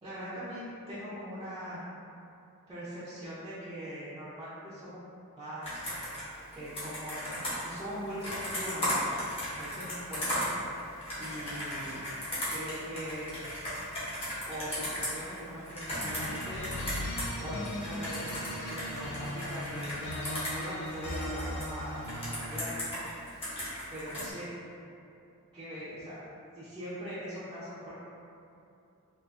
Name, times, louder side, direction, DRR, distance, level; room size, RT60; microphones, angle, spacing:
voice 1, 0.0-1.8 2.7-5.0 5.4-5.9 6.5-9.1 9.5-10.5 11.1-12.0 12.5-13.3 14.5-16.7 17.4-22.7 23.9-24.4 25.5-26.2 26.5-27.9, equal, 20° right, -13 dB, 0.5 m, -41 dB
Computer keyboard, 5.6-17.3 17.6-21.6 22.0-24.3, equal, 25° left, 0.9 m, -36 dB
sound 1, 16.0-22.8, left 1 dB, 55° left, 0.4 m, -38 dB
3.5 x 2.4 x 2.5 m, 2.7 s
head